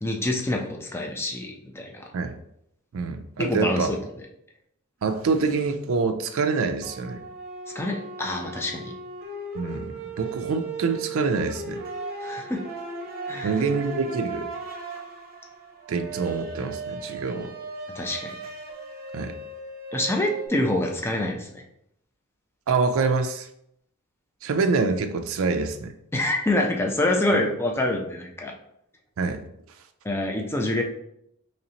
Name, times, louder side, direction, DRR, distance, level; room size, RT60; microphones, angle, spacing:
voice 1, 0.0-2.1 3.4-4.0 7.7-8.9 12.2-12.6 13.3-13.5 17.9-18.3 19.9-21.6 26.1-28.5 30.0-30.8, left 1 dB, 10° left, 1 dB, 0.4 m, -26 dB
voice 2, 2.9-3.9 5.0-7.2 9.5-11.8 13.4-14.5 15.9-17.5 19.1-19.3 22.7-23.5 24.4-25.9 27.3-27.4 29.2-29.4, right 4 dB, 65° right, 7 dB, 0.4 m, -26 dB
sound 1, 5.0-5.2 6.8-20.5, right 3 dB, 45° right, 0.8 m, -37 dB
4.0 x 3.2 x 2.8 m, 0.76 s
head